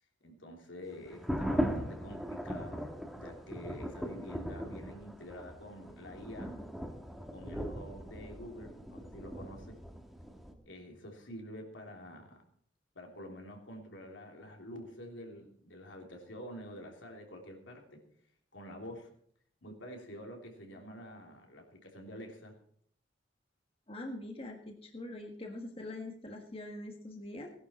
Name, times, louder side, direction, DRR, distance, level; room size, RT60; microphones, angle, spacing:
voice 1, 0.2-6.6 7.3-9.8 10.6-12.4 12.9-18.0 18.5-19.1 19.6-22.6, equal, 80° left, 2 dB, 3.1 m, -48 dB
sound 1, 1.1-10.5, equal, ahead, 1.6 m, -39 dB
voice 2, 23.9-27.5, left 1 dB, 30° left, 2 dB, 1.6 m, -43 dB
17.5 x 11.5 x 4.3 m, 0.63 s
head